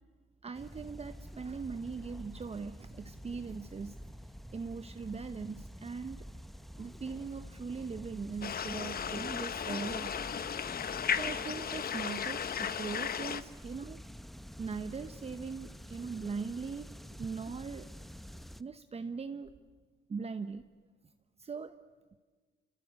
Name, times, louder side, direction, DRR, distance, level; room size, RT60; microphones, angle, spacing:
voice 1, 0.4-4.0 4.5-6.3 6.6-10.1 11.1-14.0 14.6-17.9 18.6-19.5 20.1-20.7 21.4-21.8, right 5 dB, 30° right, 9 dB, 0.9 m, -40 dB
sound 1, 0.5-18.6, equal, ahead, 0.8 m, -48 dB
sound 2, 8.4-13.4, left 7 dB, 50° left, 1.0 m, -35 dB
26.0 x 25.5 x 8.3 m, 1.5 s
cardioid pair, 90°, 20 cm